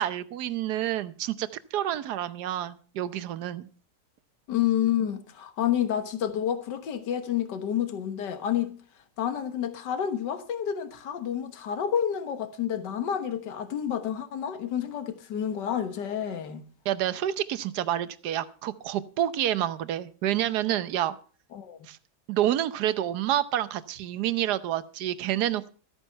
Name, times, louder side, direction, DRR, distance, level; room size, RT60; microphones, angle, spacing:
voice 1, 0.0-3.7 16.8-21.1 21.9-22.0 22.3-25.7, right 12 dB, 70° right, 1.3 m, -28 dB
voice 2, 4.5-8.8 9.2-16.7 21.5-21.8, left 9 dB, 75° left, 1.9 m, -29 dB
14.0 x 9.1 x 5.5 m
omnidirectional pair, 1.9 m